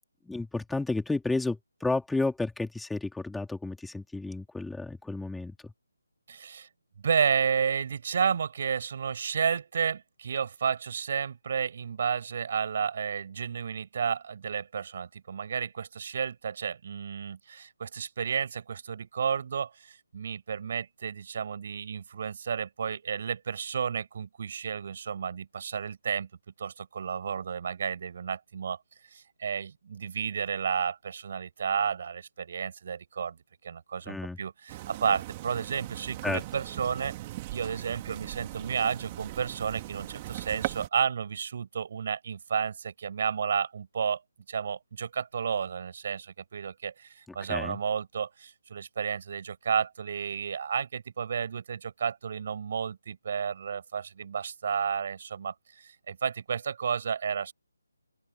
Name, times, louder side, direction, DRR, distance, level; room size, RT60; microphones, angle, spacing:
voice 1, 0.3-5.7 34.1-34.4 36.2-36.4 47.5-47.8, left 2 dB, 5° left, 3.8 m, -32 dB
voice 2, 6.3-6.7 7.0-26.3 26.6-28.8 29.1-33.4 33.6-37.1 37.5-44.2 44.5-57.5, right 7 dB, 45° right, 6.2 m, -32 dB
sound 1, 34.7-40.9, right 18 dB, 25° right, 3.2 m, -39 dB
open air
figure-of-eight pair, 155°, 0 cm